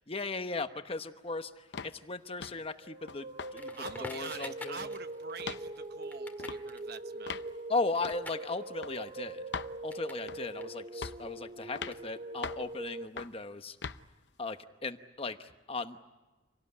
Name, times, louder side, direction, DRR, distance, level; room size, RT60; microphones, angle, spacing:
voice 1, 0.0-3.7 4.0-4.8 7.7-9.4 9.8-13.8 14.4-16.0, left 3 dB, 30° left, 9 dB, 1.0 m, -37 dB
sound 1, 1.7-2.0 2.4-2.7 3.1-3.5 3.8-4.0 4.3-5.0 5.4-5.7 6.4-6.6 7.3-7.5 8.0-8.2 8.8-9.0 9.5-9.7 10.3-10.6 11.0-11.3 11.8-12.0 12.4-12.7 13.2-13.4 13.8-14.0, left 5 dB, 65° left, 0.7 m, -40 dB
sound 2, 2.8-13.1, right 2 dB, 35° right, 0.7 m, -42 dB
Crackle, 3.5-10.3 10.5-13.0, left 2 dB, 10° left, 1.9 m, -50 dB
voice 2, 3.8-7.4, right 5 dB, 55° right, 10 dB, 1.1 m, -45 dB
27.0 x 18.0 x 9.8 m, 1.2 s
head